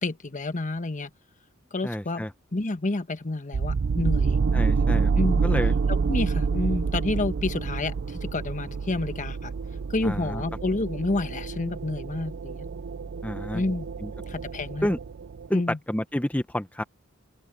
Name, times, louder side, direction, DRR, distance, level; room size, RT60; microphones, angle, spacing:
voice 1, 0.0-1.1 1.7-2.2 2.5-4.4 5.2-5.5 5.9-9.5 9.9-12.6 13.5-13.9 14.3-14.9 15.5-15.8, left 2 dB, 35° left, 1.2 m, -29 dB
voice 2, 1.8-2.3 4.5-5.1 5.4-5.7 10.0-10.4 13.2-13.6 14.0-14.1 14.8-15.0 15.5-15.6 15.9-16.8, equal, 5° left, 0.9 m, -29 dB
sound 1, 3.5-15.5, right 5 dB, 55° right, 0.4 m, -27 dB
open air
head